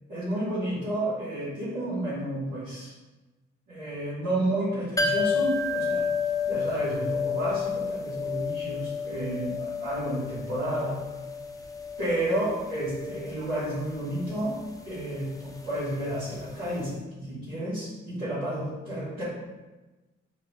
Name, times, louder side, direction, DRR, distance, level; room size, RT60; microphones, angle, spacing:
voice 1, 0.1-2.9 3.7-6.1 6.5-11.0 12.0-14.5 14.8-19.2, right 1 dB, 90° right, -14 dB, 1.4 m, -31 dB
sound 1, 5.0-16.6 16.8-16.9, left 4 dB, 10° left, 0.5 m, -31 dB
4.6 x 2.5 x 3.0 m, 1.2 s
hypercardioid pair, 40°, 32 cm